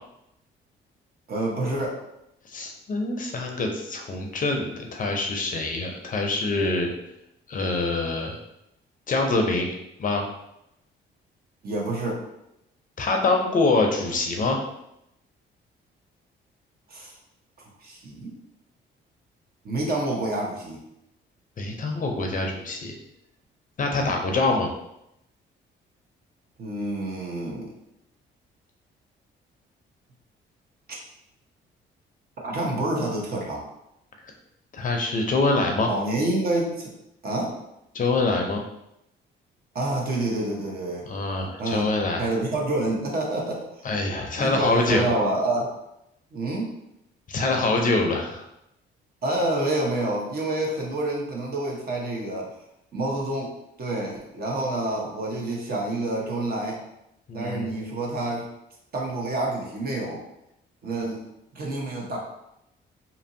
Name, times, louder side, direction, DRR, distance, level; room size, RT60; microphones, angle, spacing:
voice 1, 1.3-2.0 11.6-12.2 16.9-17.1 17.8-18.3 19.6-20.8 23.9-24.1 26.6-27.7 32.4-33.6 35.9-36.9 37.2-37.5 39.7-41.1 41.6-41.9 42.2-43.9 44.4-45.7 46.3-46.7 49.2-52.5 52.9-53.5 53.8-56.8 57.3-58.5 58.9-60.2 60.8-61.2 61.5-62.2, right 2 dB, 50° right, -1 dB, 0.8 m, -28 dB
voice 2, 2.5-6.9 7.5-8.4 9.1-9.7 10.0-10.2 13.0-14.6 21.6-22.9 23.8-24.7 34.7-35.9 37.9-38.6 41.1-42.3 43.8-45.0 47.3-48.4 57.3-57.7, left 3 dB, 40° left, 2 dB, 0.5 m, -25 dB
2.8 x 2.6 x 2.6 m, 0.83 s
cardioid pair, 90°, 20 cm